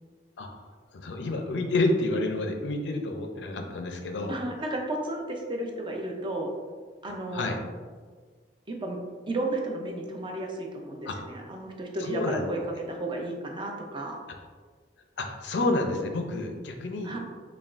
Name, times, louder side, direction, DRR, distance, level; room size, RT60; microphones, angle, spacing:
voice 1, 0.9-4.4 7.0-7.6 11.1-11.2 12.0-12.5 15.2-17.2, left 2 dB, 85° left, 4 dB, 0.5 m, -29 dB
voice 2, 4.3-6.5 7.0-7.5 8.7-9.0 9.3-12.6 12.9-14.2 17.0-17.2, right 1 dB, 30° right, 1 dB, 0.5 m, -33 dB
5.7 x 2.3 x 2.4 m, 1.5 s
head